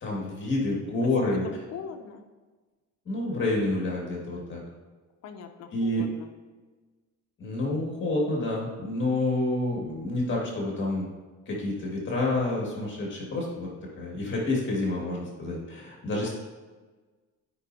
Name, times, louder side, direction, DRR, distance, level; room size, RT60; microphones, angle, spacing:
voice 1, 0.0-1.5 3.1-4.6 5.7-6.0 7.4-11.1 11.5-13.7 14.0-16.3, left 2 dB, 35° left, -3 dB, 2.0 m, -28 dB
voice 2, 1.0-2.2 5.2-6.3 16.2-16.3, left 6 dB, 50° left, 5 dB, 0.8 m, -41 dB
13.0 x 5.3 x 2.8 m, 1.3 s
cardioid pair, 130°, 32 cm